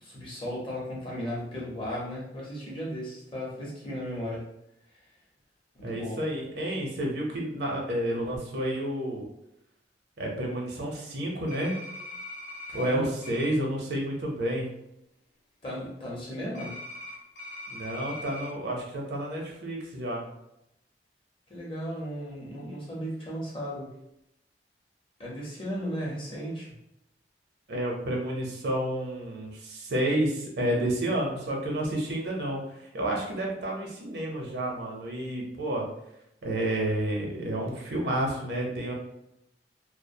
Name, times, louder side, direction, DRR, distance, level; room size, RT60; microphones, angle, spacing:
voice 1, 0.0-4.5 5.7-6.2 12.7-13.1 15.6-16.8 21.5-23.9 25.2-26.8, equal, 30° left, -4 dB, 0.7 m, -35 dB
voice 2, 5.8-9.2 10.2-11.8 12.7-14.7 17.7-20.2 27.7-32.6 32.9-35.9 36.4-38.9, right 1 dB, 65° right, -1 dB, 0.6 m, -30 dB
sound 1, 11.5-12.9 13.2-13.5 16.6-18.5, left 1 dB, 85° left, 0.7 m, -41 dB
2.3 x 2.1 x 2.6 m, 0.81 s
head